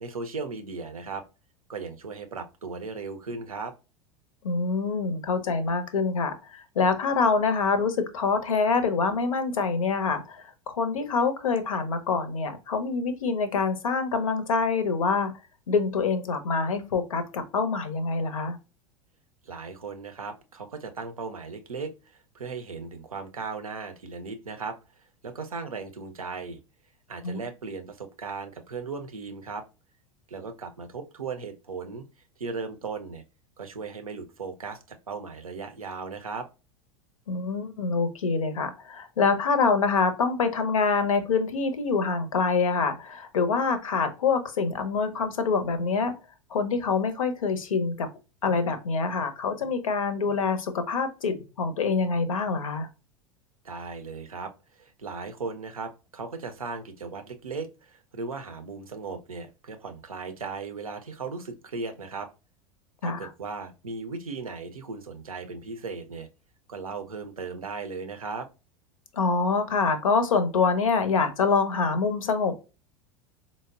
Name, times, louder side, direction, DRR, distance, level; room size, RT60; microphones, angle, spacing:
voice 1, 0.0-1.2 1.7-3.7 19.4-26.6 27.1-29.7 30.3-32.0 32.4-33.2 33.6-36.5 53.6-62.3 63.0-66.3 66.7-68.5, right 4 dB, 85° right, 7 dB, 0.5 m, -37 dB
voice 2, 4.4-15.3 15.7-18.6 27.2-27.4 37.3-46.1 46.5-48.1 48.4-52.9 63.0-63.3 69.1-72.6, left 4 dB, 75° left, 9 dB, 0.6 m, -25 dB
4.0 x 2.0 x 2.3 m, 0.30 s
figure-of-eight pair, 85°, 18 cm